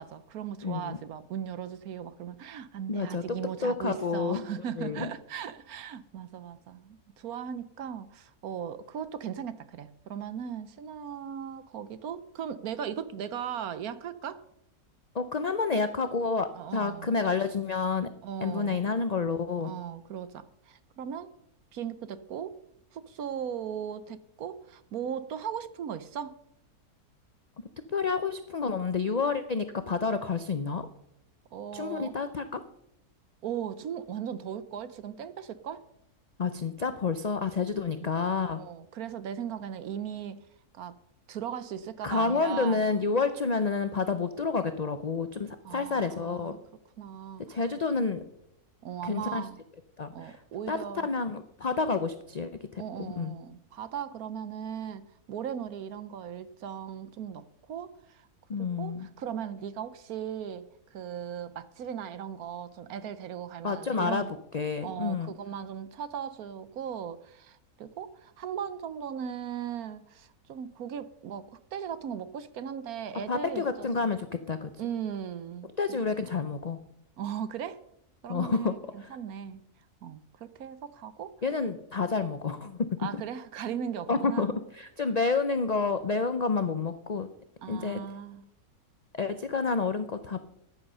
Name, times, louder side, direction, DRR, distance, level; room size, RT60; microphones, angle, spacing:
voice 1, 0.0-14.4 16.5-17.1 18.2-18.8 19.6-21.3 21.7-22.6 22.9-26.3 31.5-32.1 33.4-35.8 38.5-40.4 40.7-41.0 41.3-42.8 45.6-46.6 47.0-47.6 48.8-49.6 50.1-51.1 52.8-58.2 58.5-64.3 64.8-74.1 74.8-76.0 77.2-77.8 78.2-79.6 80.0-81.3 83.0-84.6 87.6-88.4, right 8 dB, 70° right, 1.3 m, -38 dB
voice 2, 0.6-1.0 2.9-4.4 4.8-5.1 15.1-18.1 18.4-19.7 27.9-30.9 31.7-32.6 36.4-38.6 42.0-46.5 47.5-48.2 49.0-49.4 50.0-50.4 50.7-53.3 58.5-59.1 63.6-64.2 64.5-65.3 73.3-74.7 75.8-76.8 78.3-78.7 81.4-82.9 84.1-87.3 87.7-88.0 89.1-90.4, left 4 dB, 50° left, 0.5 m, -29 dB
14.0 x 10.5 x 5.5 m
omnidirectional pair, 1.7 m